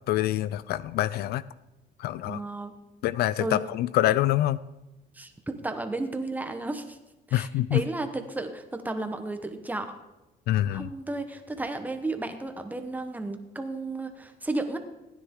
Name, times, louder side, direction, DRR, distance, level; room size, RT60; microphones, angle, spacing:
voice 1, 0.1-1.4 2.0-2.4 3.0-4.6 7.3-7.8 10.5-10.9, left 14 dB, 70° left, 18 dB, 0.4 m, -25 dB
voice 2, 2.2-2.7 3.4-3.6 5.1-7.0 7.3-9.9 10.7-14.8, right 2 dB, 10° right, 7 dB, 1.2 m, -33 dB
16.0 x 9.8 x 3.8 m, 0.99 s
cardioid pair, 110°, 17 cm